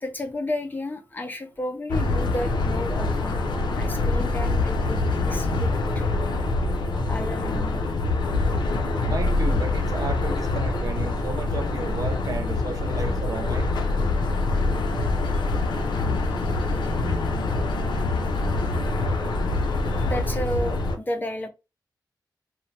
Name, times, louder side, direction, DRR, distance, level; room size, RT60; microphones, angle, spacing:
voice 1, 0.0-3.4 3.7-6.0 7.1-7.8 15.3-15.4 19.9-21.5, left 1 dB, 25° left, 0.4 m, -32 dB
sound 1, 1.9-21.0, left 2 dB, 85° left, 0.5 m, -25 dB
voice 2, 9.1-13.7, right 4 dB, 55° right, 0.5 m, -33 dB
2.9 x 2.1 x 2.6 m
wide cardioid pair, 160°, 8 cm